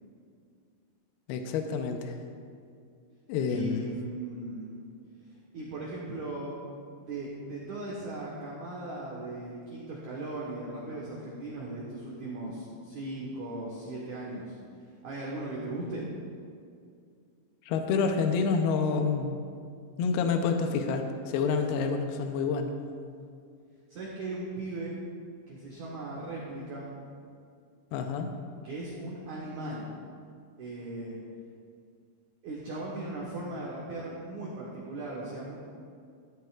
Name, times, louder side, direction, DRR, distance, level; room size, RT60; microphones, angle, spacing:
voice 1, 1.3-2.2 3.3-3.9 17.7-19.4 20.0-22.7 27.9-28.4, left 5 dB, 85° left, 5 dB, 2.2 m, -28 dB
voice 2, 3.5-4.9 5.3-6.6 7.0-14.6 15.0-16.1 23.9-25.0 25.5-26.9 28.6-29.9 30.6-31.2 32.4-35.6, right 2 dB, 80° right, -5 dB, 1.7 m, -38 dB
14.5 x 12.5 x 2.4 m, 2.3 s
omnidirectional pair, 5.5 m